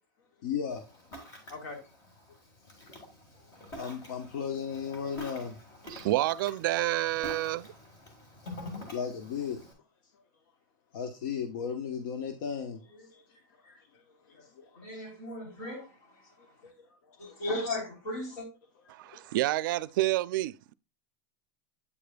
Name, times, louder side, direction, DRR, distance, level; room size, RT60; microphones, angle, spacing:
voice 1, 0.4-0.8 3.8-5.6 8.9-9.6 10.9-12.8 13.3-14.0 14.3-15.0 16.6-16.7 19.1-19.2, left 7 dB, 75° left, 0.9 m, -36 dB
Ocean, 0.7-9.7, left 1 dB, 30° left, 1.8 m, -47 dB
voice 2, 5.9-7.7 18.9-20.7, right 16 dB, 85° right, 0.4 m, -29 dB
voice 3, 14.8-15.9 17.2-18.5, left 1 dB, 60° left, 3.3 m, -36 dB
8.5 x 5.0 x 2.2 m
supercardioid pair, 170°, 11 cm